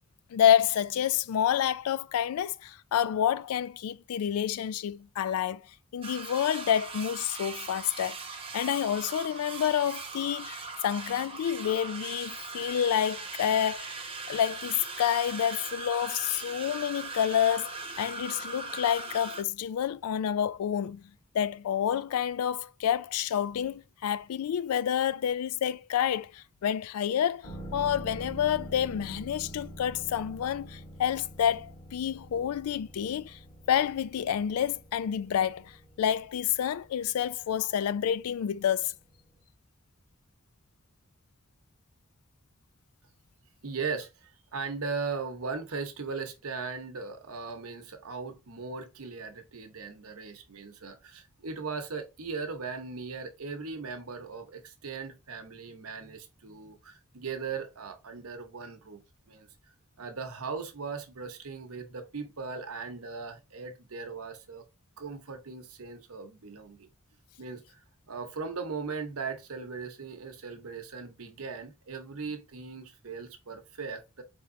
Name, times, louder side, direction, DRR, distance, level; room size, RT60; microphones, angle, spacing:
voice 1, 0.3-5.6 5.9-21.0 21.3-33.4 33.7-38.9, left 9 dB, 80° left, 0.3 m, -29 dB
sound 1, 6.0-19.4, right 4 dB, 25° right, 0.7 m, -40 dB
sound 2, 27.4-39.0 39.3-39.4, right 1 dB, 30° left, 1.6 m, -46 dB
voice 2, 43.6-59.0 59.3-59.5 60.0-64.6 65.0-66.9 67.4-74.2, right 4 dB, 75° right, 0.9 m, -38 dB
4.5 x 3.5 x 2.6 m
head